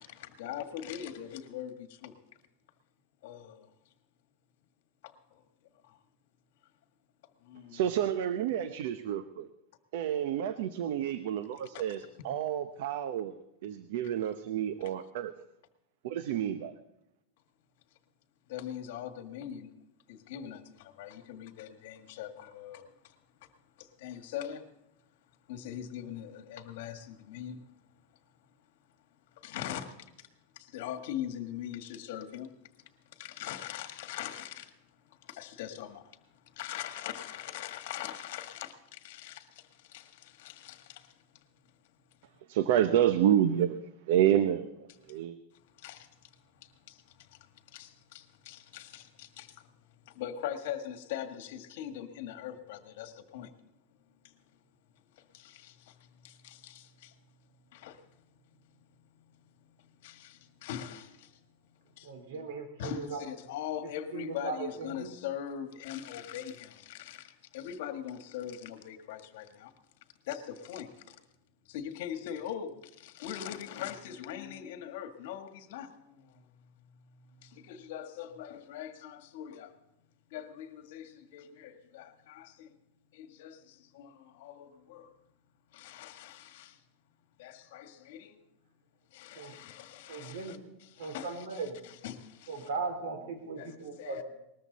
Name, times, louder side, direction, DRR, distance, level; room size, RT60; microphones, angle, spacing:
voice 1, 0.0-2.2 3.2-3.7 5.0-5.4 5.8-6.0 7.4-7.8 11.5-12.5 12.8-13.0 14.8-14.9 18.5-19.7 20.1-23.1 23.8-24.7 25.5-27.6 29.3-30.3 30.5-32.5 33.1-34.7 35.0-36.2 36.5-41.2 44.9-45.2 45.7-49.7 50.0-53.5 54.2-54.3 55.1-57.1 57.7-58.0 58.6-58.8 59.0-61.4 61.8-62.3 62.8-69.7 70.2-71.2 71.6-76.4 77.3-79.7 80.3-82.7 83.1-85.1 85.7-86.8 87.4-88.4 89.1-92.7 93.6-94.2, left 10 dB, 65° left, 1.8 m, -42 dB
voice 2, 7.7-9.5 9.9-13.4 13.6-15.3 16.0-16.7 42.5-43.8 44.1-44.7 45.1-45.4, right 10 dB, 65° right, 0.8 m, -29 dB
voice 3, 62.0-63.2 63.8-65.2 89.4-89.5 90.1-90.6 91.0-91.8 92.5-94.2, right 4 dB, 80° right, 3.9 m, -38 dB
20.0 x 13.5 x 4.1 m
supercardioid pair, 160°, 0 cm